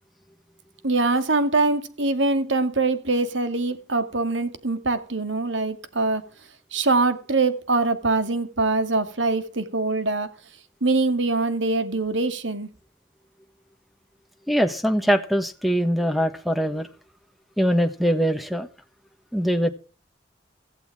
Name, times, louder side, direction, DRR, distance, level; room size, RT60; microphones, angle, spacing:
voice 1, 0.8-6.2 6.7-10.3 10.8-12.7, right 3 dB, 70° right, 2.3 m, -23 dB
voice 2, 14.5-16.9 17.6-18.7 19.3-19.7, equal, ahead, 1.3 m, -22 dB
16.0 x 15.5 x 3.6 m
head